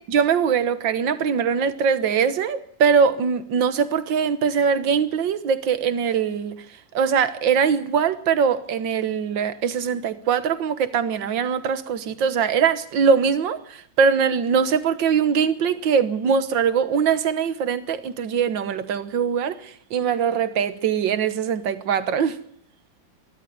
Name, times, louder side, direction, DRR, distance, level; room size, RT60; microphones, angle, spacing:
voice 1, 0.1-6.6 6.9-22.4, right 6 dB, 80° right, 1.9 m, -22 dB
23.5 x 12.5 x 9.3 m
omnidirectional pair, 2.0 m